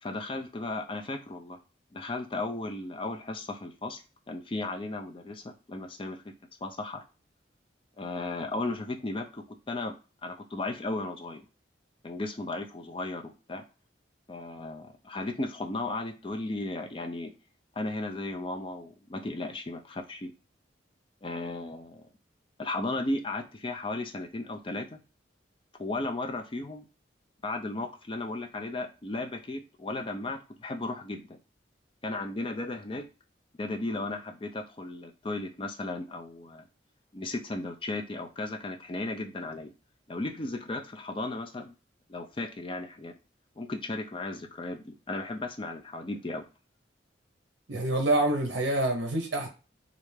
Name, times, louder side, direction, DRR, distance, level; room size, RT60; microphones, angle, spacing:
voice 1, 0.0-1.6 1.9-6.2 6.6-7.0 8.0-9.9 10.2-11.4 12.0-13.6 14.3-17.3 17.8-20.3 21.2-22.1 22.6-25.0 25.8-26.9 27.4-31.4 32.0-33.1 33.6-36.6 37.1-39.7 40.1-41.7 42.1-43.1 43.6-46.4, left 2 dB, 30° left, 0.5 m, -35 dB
voice 2, 47.7-49.5, right 1 dB, 65° right, 0.6 m, -26 dB
3.2 x 2.5 x 3.2 m
head